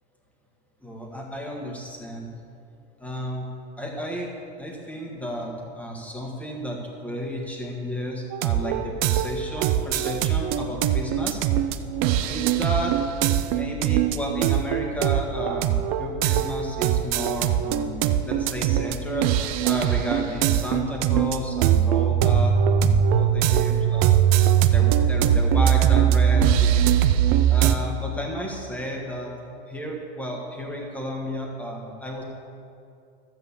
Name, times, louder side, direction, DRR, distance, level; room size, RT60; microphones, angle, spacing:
voice 1, 0.8-2.4 3.0-3.4 3.8-4.3 4.6-11.4 12.3-13.0 13.5-19.3 19.6-26.9 27.5-29.3 29.7-32.2, equal, 5° left, 0 dB, 1.5 m, -32 dB
sound 1, 8.3-27.8, right 9 dB, 35° right, 0.5 m, -21 dB
13.0 x 7.9 x 7.1 m, 2.6 s
supercardioid pair, 160°, 33 cm